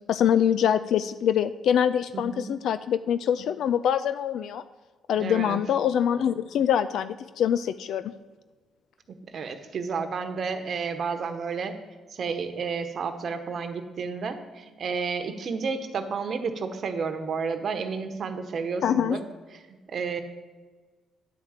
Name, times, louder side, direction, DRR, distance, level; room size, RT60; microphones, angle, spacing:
voice 1, 0.1-4.6 5.1-8.1 18.8-19.2, left 9 dB, 75° left, 13 dB, 0.3 m, -24 dB
voice 2, 2.1-2.5 5.1-5.6 9.3-11.7 12.1-19.2 19.7-20.2, right 5 dB, 55° right, 8 dB, 1.0 m, -31 dB
10.0 x 4.9 x 7.2 m, 1.4 s
cardioid pair, 90°, 0 cm